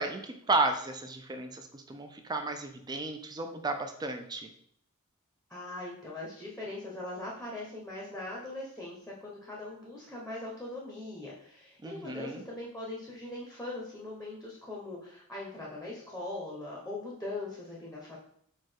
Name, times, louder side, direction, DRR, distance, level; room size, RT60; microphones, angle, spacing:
voice 1, 0.0-4.5 11.8-12.4, right 3 dB, 20° right, 6 dB, 0.4 m, -33 dB
voice 2, 5.5-18.2, left 2 dB, 5° left, -4 dB, 0.8 m, -41 dB
4.7 x 2.3 x 4.4 m, 0.67 s
head